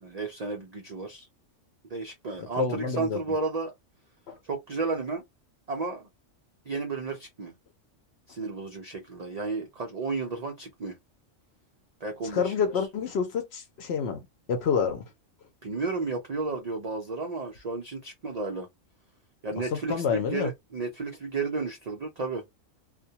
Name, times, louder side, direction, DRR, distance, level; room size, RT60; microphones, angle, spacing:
voice 1, 0.0-1.3 1.9-3.7 4.4-5.2 5.7-6.1 6.6-7.5 8.3-10.9 12.0-12.5 15.6-18.7 19.4-22.4, right 3 dB, 90° right, 0.3 m, -33 dB
voice 2, 2.6-3.2 4.3-4.4 12.2-14.2 14.5-15.0 19.7-20.5, left 6 dB, 65° left, 0.7 m, -28 dB
2.2 x 2.1 x 2.7 m
omnidirectional pair, 1.4 m